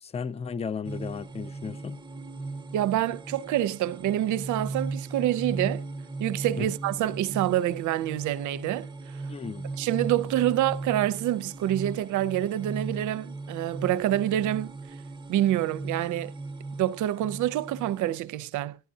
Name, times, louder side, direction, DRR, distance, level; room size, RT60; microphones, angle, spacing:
voice 1, 0.0-2.0 6.6-6.7 9.3-9.7, left 6 dB, 20° left, 0.4 m, -34 dB
sound 1, 0.8-18.2, right 3 dB, 15° right, 0.8 m, -37 dB
voice 2, 2.7-5.8 6.2-8.9 9.8-14.7 15.3-16.3 16.8-18.8, right 13 dB, 75° right, 0.5 m, -27 dB
11.0 x 10.5 x 2.7 m
cardioid pair, 90°, 30 cm